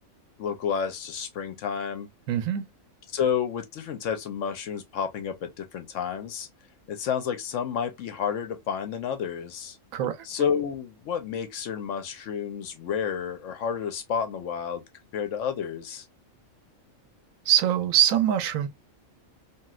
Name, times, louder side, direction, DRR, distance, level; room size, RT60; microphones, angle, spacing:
voice 1, 0.4-2.1 3.1-6.5 6.9-9.8 10.2-14.8 15.1-16.0, left 7 dB, 70° left, 1.0 m, -30 dB
voice 2, 2.3-2.6 9.9-10.2 17.5-18.7, right 10 dB, 90° right, 1.0 m, -23 dB
3.0 x 2.6 x 2.3 m
omnidirectional pair, 1.4 m